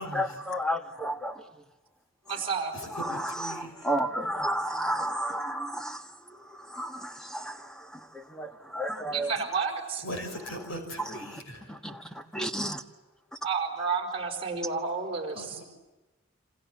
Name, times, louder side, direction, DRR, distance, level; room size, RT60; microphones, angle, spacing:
voice 1, 0.0-1.5 2.9-9.3 11.0-11.4 11.7-12.8, right 1 dB, 5° left, 1.4 m, -33 dB
voice 2, 2.3-2.7 9.1-10.0 13.4-15.6, right 5 dB, 25° right, 5.1 m, -31 dB
voice 3, 3.0-3.9 10.0-11.7 15.3-15.6, equal, 75° left, 5.5 m, -39 dB
27.5 x 27.0 x 7.5 m
head